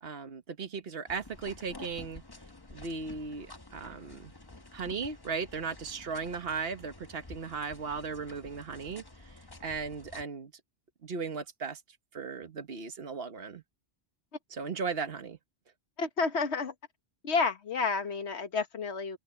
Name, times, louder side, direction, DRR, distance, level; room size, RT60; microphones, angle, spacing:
voice 1, 0.0-2.2 2.7-4.3 4.7-9.3 9.6-10.5 11.0-11.8 12.1-13.6 14.5-15.4, right 5 dB, 65° right, 1.5 m, -37 dB
sound 1, 1.1-10.2, left 2 dB, 20° left, 1.2 m, -50 dB
voice 2, 16.0-16.7 17.2-19.2, left 4 dB, 85° left, 1.6 m, -30 dB
open air
omnidirectional pair, 1.1 m